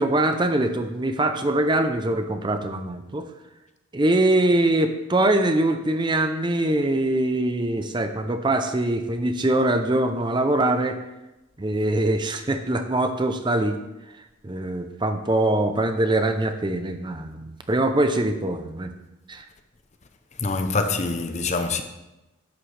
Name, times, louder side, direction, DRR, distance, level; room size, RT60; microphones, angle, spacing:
voice 1, 0.0-3.3 3.9-11.0 11.6-13.8 14.4-18.9 19.3-19.4, right 1 dB, 20° right, 0.5 m, -23 dB
voice 2, 20.4-21.8, left 3 dB, 35° left, 0.6 m, -25 dB
11.5 x 8.8 x 3.3 m
head